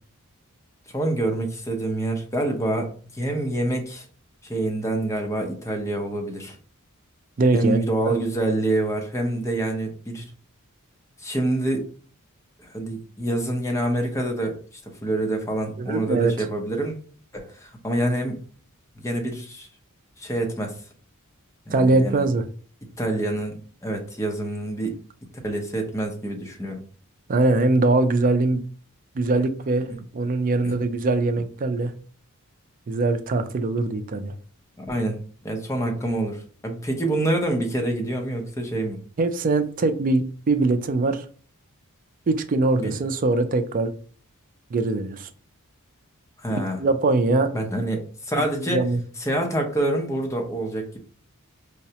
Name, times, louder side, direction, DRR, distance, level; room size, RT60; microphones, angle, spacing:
voice 1, 0.9-4.1 4.4-6.6 7.5-10.3 11.2-11.9 12.6-14.6 15.0-17.0 17.3-18.4 19.0-19.7 20.2-20.8 21.7-22.3 23.0-24.9 25.3-26.8 29.9-30.0 30.6-30.7 34.8-39.0 42.8-43.0 46.4-46.8 47.5-48.8 49.2-51.0, right 1 dB, 15° left, 2 dB, 0.6 m, -26 dB
voice 2, 7.4-7.8 8.1-8.2 15.8-16.5 21.7-22.4 27.3-28.6 29.1-31.9 32.9-34.3 39.2-41.2 42.3-43.9 44.7-45.3 46.8-47.5 48.6-49.0, right 3 dB, 40° right, 9 dB, 0.4 m, -22 dB
4.7 x 2.1 x 2.8 m, 0.43 s
head